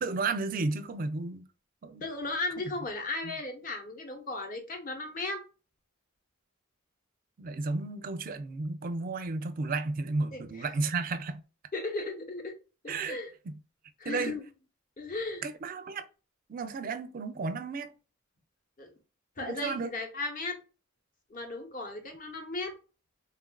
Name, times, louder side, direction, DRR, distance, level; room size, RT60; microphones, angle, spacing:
voice 1, 0.0-1.4 1.8-2.0 3.2-3.4 7.4-11.4 12.9-13.2 14.1-14.3 15.4-16.1 16.5-17.9 19.4-19.9, right 3 dB, 45° right, 0.4 m, -33 dB
voice 2, 2.0-5.4 10.3-10.7 11.7-12.5 12.8-13.3 14.0-14.4 15.0-15.4 18.8-18.9 19.4-20.6 21.3-22.7, left 2 dB, 40° left, 0.9 m, -36 dB
3.4 x 2.4 x 2.2 m
head